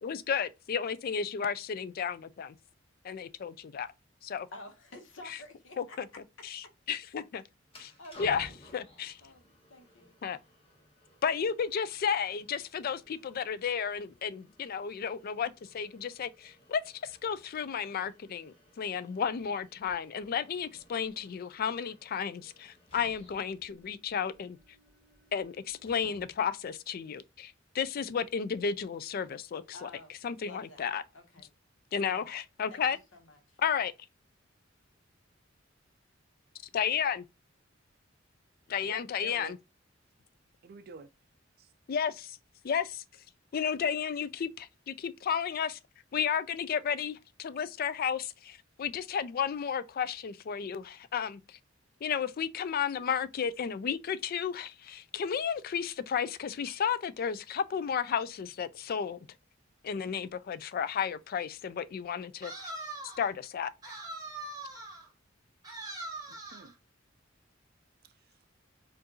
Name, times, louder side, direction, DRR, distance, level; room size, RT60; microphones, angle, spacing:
voice 1, 0.0-2.6 3.0-3.9 4.3-4.5 5.3-5.4 5.8-6.1 6.4-7.4 7.8-7.9 8.2-9.2 10.2-10.4 11.2-24.6 25.3-29.9 30.2-31.0 31.9-33.0 33.6-33.9 36.7-37.2 38.7-39.6 41.9-42.4 42.6-43.0 43.5-45.8 46.1-51.6 52.0-59.2 59.8-62.5 63.2-63.9, left 7 dB, 50° left, 0.4 m, -33 dB
voice 2, 4.5-6.0 8.0-8.6 9.2-10.2 29.7-30.1 30.4-31.5 32.0-32.3 32.7-32.8 33.1-33.6, left 2 dB, 75° left, 1.1 m, -50 dB
sound 1, 7.7-26.6, left 1 dB, 30° left, 1.2 m, -58 dB
voice 3, 38.8-39.6 40.6-41.1 41.6-41.7 66.3-66.8 68.0-68.4, right 4 dB, 50° right, 0.4 m, -50 dB
sound 2, 62.4-63.3 63.8-65.1 65.6-66.7, right 2 dB, 20° right, 1.5 m, -42 dB
4.5 x 2.5 x 2.9 m
head